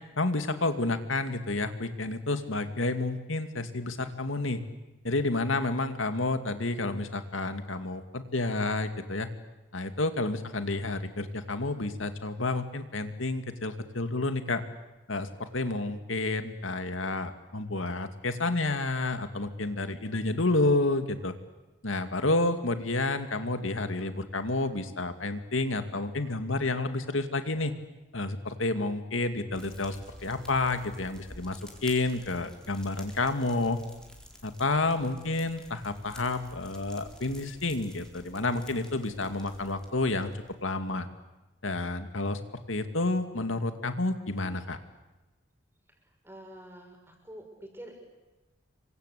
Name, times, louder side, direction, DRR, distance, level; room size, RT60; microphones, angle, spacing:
voice 1, 0.2-4.6 5.0-9.3 9.7-14.6 15.1-21.3 21.8-27.7 28.1-30.0 30.2-33.8 34.4-40.3 40.6-41.1 41.6-42.4 42.7-44.8, left 2 dB, 90° left, 8 dB, 2.4 m, -30 dB
Fire, 29.5-40.7, equal, 5° left, 4.3 m, -51 dB
voice 2, 46.2-48.1, right 1 dB, 10° right, 2 dB, 6.4 m, -47 dB
28.0 x 24.5 x 8.5 m, 1.1 s
head